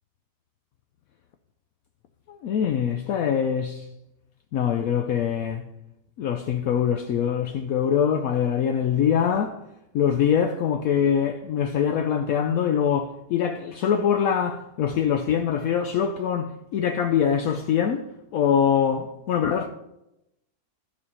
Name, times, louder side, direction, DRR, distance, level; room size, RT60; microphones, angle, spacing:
voice 1, 2.3-3.9 4.5-5.7 6.2-9.6 9.9-19.7, left 8 dB, 70° left, 1.0 m, -23 dB
13.0 x 4.3 x 5.4 m
omnidirectional pair, 1.7 m